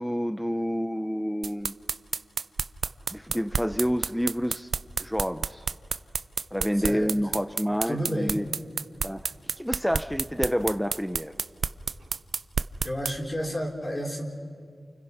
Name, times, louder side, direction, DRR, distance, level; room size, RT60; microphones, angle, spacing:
voice 1, 0.0-1.7 3.1-4.7 5.0-5.6 6.5-8.4 9.0-9.3 9.6-11.3, equal, ahead, 10 dB, 0.8 m, -28 dB
sound 1, 1.4-13.1, right 5 dB, 80° right, 0.7 m, -29 dB
voice 2, 6.7-7.1 7.9-8.5 12.8-14.3, equal, 30° left, 0 dB, 4.7 m, -31 dB
29.5 x 28.5 x 5.6 m, 2.2 s
cardioid pair, 50°, 0 cm